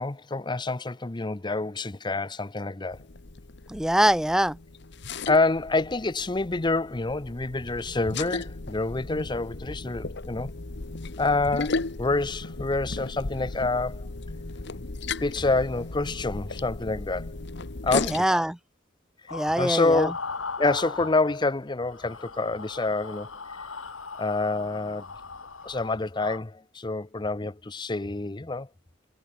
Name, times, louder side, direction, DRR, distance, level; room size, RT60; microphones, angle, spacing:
voice 1, 0.0-3.0 5.3-10.5 11.2-14.1 15.2-17.3 17.8-18.2 19.6-20.1 20.6-23.3 24.2-25.1 25.6-28.7, left 3 dB, 20° left, 0.7 m, -27 dB
sound 1, 2.9-18.2, left 3 dB, 60° left, 1.2 m, -36 dB
voice 2, 3.7-4.6 18.0-18.6 19.3-20.1, right 1 dB, 5° right, 0.3 m, -23 dB
sound 2, 19.3-21.6 21.8-26.4, left 4 dB, 80° left, 2.6 m, -38 dB
head